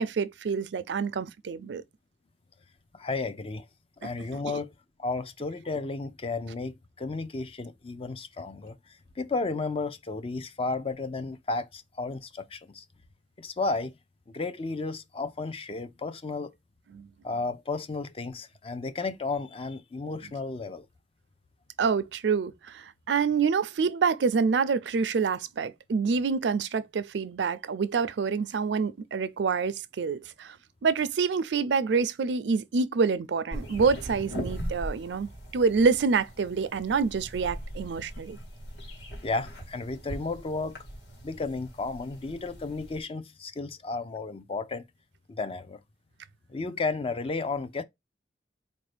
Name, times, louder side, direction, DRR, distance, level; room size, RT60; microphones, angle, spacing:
voice 1, 0.0-1.8 4.0-4.1 16.9-17.1 21.8-30.6 30.8-38.4, right 5 dB, 80° right, 0.4 m, -27 dB
voice 2, 2.9-3.7 4.0-12.8 13.4-13.9 14.3-16.5 17.2-20.9 39.2-40.8 41.2-44.8 45.3-45.8 46.5-47.8, left 3 dB, 35° left, 0.5 m, -33 dB
sound 1, 33.5-43.0, equal, 80° left, 1.7 m, -40 dB
4.3 x 2.6 x 3.3 m
head